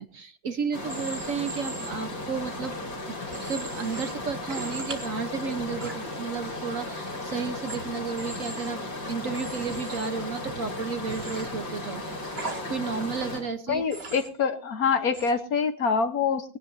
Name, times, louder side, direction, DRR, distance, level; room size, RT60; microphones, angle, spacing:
voice 1, 0.0-2.8 3.1-12.0 12.7-13.8, right 5 dB, 50° right, 10 dB, 1.2 m, -32 dB
sound 1, 0.7-13.4, left 2 dB, 85° left, 5.5 m, -35 dB
Human voice / Train, 0.9-1.9 3.3-4.1 4.5-5.1 5.8-5.9 7.7-7.8 8.2-8.7 9.3-10.1 11.1-11.4 12.4-12.6 13.9-14.3 15.1-15.3, right 3 dB, 35° right, 2.3 m, -39 dB
voice 2, 13.7-16.6, left 5 dB, 55° left, 10 dB, 1.4 m, -25 dB
21.0 x 17.0 x 2.7 m, 0.41 s
omnidirectional pair, 2.0 m